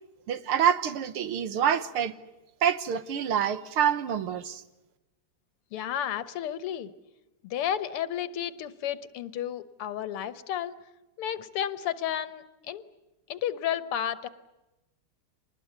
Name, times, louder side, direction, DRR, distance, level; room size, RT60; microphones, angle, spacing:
voice 1, 0.3-2.1 2.6-4.6, right 8 dB, 75° right, 2.0 m, -26 dB
voice 2, 5.7-6.9 7.4-10.8 11.2-12.8 13.3-14.3, left 10 dB, 85° left, 2.0 m, -32 dB
25.5 x 20.0 x 9.4 m
omnidirectional pair, 2.4 m